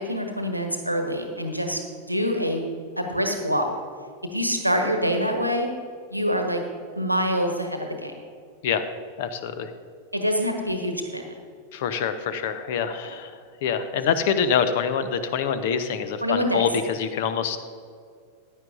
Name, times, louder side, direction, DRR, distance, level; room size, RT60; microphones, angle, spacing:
voice 1, 0.1-1.8 2.1-2.7 3.0-3.7 4.3-5.7 6.1-6.6 6.9-8.1 10.1-11.3 16.2-16.7, equal, 90° right, 4 dB, 1.2 m, -25 dB
voice 2, 9.2-9.7 11.7-13.3 13.6-17.6, left 7 dB, 50° left, 11 dB, 0.8 m, -25 dB
15.0 x 10.0 x 2.6 m, 2.1 s
figure-of-eight pair, 90°, 0 cm